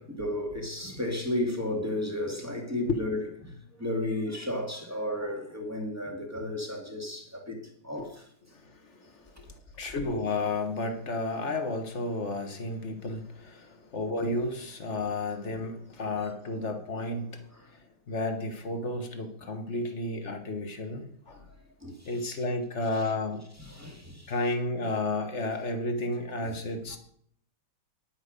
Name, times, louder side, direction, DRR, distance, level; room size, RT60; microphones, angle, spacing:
voice 1, 0.0-7.6 7.8-8.2 21.8-22.1 23.7-24.3 26.4-26.6, left 1 dB, 5° right, 2.0 m, -33 dB
voice 2, 8.5-9.5 9.8-17.5 18.1-21.4 22.0-23.4 24.3-27.0, left 2 dB, 35° left, 1.5 m, -32 dB
10.5 x 9.0 x 5.3 m
omnidirectional pair, 2.4 m